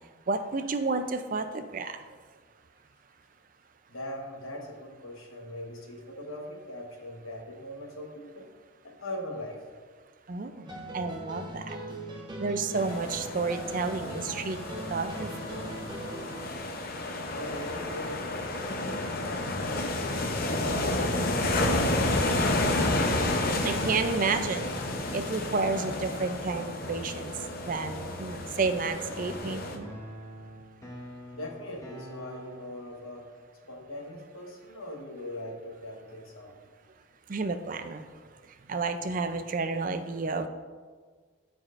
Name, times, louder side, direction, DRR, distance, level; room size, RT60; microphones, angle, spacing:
voice 1, 0.3-1.9 10.3-10.7 10.9-11.8 12.4-14.6 14.9-15.3 23.6-24.7 25.1-27.3 27.6-30.0 37.3-38.0 38.7-40.5, right 4 dB, 40° right, 9 dB, 0.4 m, -30 dB
voice 2, 3.9-8.5 8.8-9.6 17.3-21.1 21.4-23.0 31.3-33.4 33.7-36.6, left 1 dB, 85° left, 1 dB, 1.2 m, -41 dB
sound 1, 10.6-16.7, right 1 dB, 20° right, 0.8 m, -40 dB
sound 2, 12.7-29.8, left 2 dB, 45° left, 0.7 m, -31 dB
sound 3, 24.8-32.8, left 1 dB, 15° left, 0.9 m, -45 dB
13.5 x 4.7 x 2.5 m, 1.5 s
head